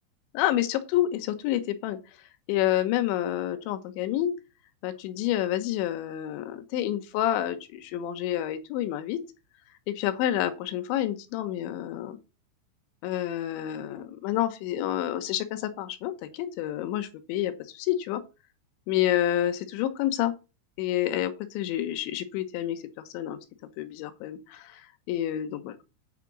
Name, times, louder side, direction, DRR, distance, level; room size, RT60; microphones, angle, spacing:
voice 1, 0.3-2.0 2.5-4.3 4.8-9.2 9.9-12.2 13.0-18.2 18.9-20.3 20.8-22.8 23.1-23.4 23.8-24.8 25.1-25.8, left 12 dB, 75° left, 3.4 m, -28 dB
9.4 x 5.1 x 7.4 m
omnidirectional pair, 5.6 m